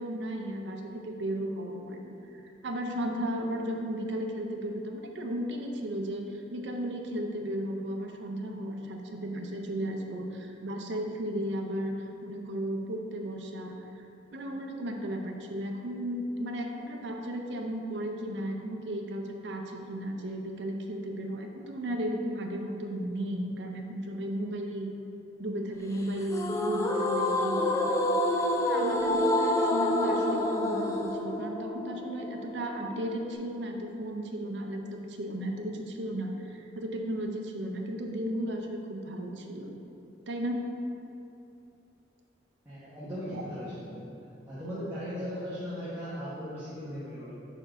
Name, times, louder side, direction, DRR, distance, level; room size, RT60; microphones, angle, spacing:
voice 1, 0.0-11.9 12.2-14.1 14.3-25.0 25.4-28.0 28.6-39.8 40.3-40.6, right 1 dB, 70° right, 2 dB, 0.6 m, -35 dB
sound 1, 26.3-33.4, left 1 dB, 15° left, 0.4 m, -28 dB
voice 2, 42.6-44.0 44.5-47.3, equal, 15° right, -12 dB, 1.0 m, -38 dB
4.5 x 4.4 x 4.9 m, 2.7 s
head